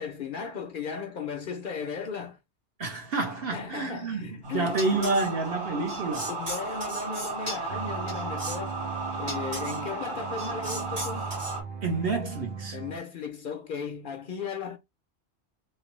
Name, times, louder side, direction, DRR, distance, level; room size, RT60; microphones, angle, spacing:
voice 1, 0.0-2.4 3.5-4.8 6.3-8.8 9.2-11.4 12.7-14.8, left 6 dB, 55° left, 0.7 m, -36 dB
voice 2, 2.8-6.4 11.8-12.8, right 3 dB, 60° right, 1.3 m, -29 dB
sound 1, 4.4-11.6, right 2 dB, 45° right, 1.6 m, -34 dB
sound 2, 7.7-13.0, right 6 dB, 85° right, 1.3 m, -39 dB
3.2 x 2.9 x 3.1 m
omnidirectional pair, 1.1 m